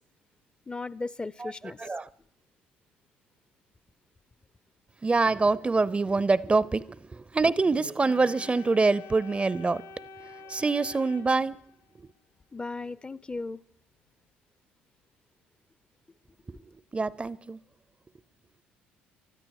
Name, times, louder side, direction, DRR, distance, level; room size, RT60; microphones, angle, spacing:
voice 1, 0.7-1.8 12.5-13.6, left 3 dB, 20° left, 0.5 m, -36 dB
voice 2, 1.4-2.1 5.0-9.8 10.2-11.6 12.0-12.1 16.5-17.6, right 3 dB, 20° right, 0.6 m, -26 dB
Organ, 8.0-12.0, left 3 dB, 65° left, 1.6 m, -47 dB
20.0 x 13.0 x 4.8 m
hypercardioid pair, 55°, 5 cm